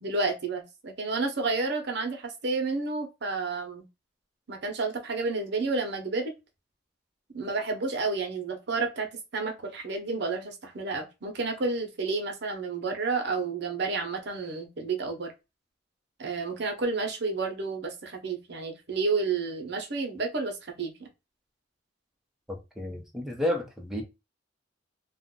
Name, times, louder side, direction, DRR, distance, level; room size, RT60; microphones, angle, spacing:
voice 1, 0.0-3.9 4.5-6.3 7.3-15.3 16.2-21.1, right 3 dB, 65° right, 0.8 m, -30 dB
voice 2, 22.5-24.0, left 1 dB, ahead, 0.7 m, -31 dB
2.5 x 2.2 x 3.7 m
head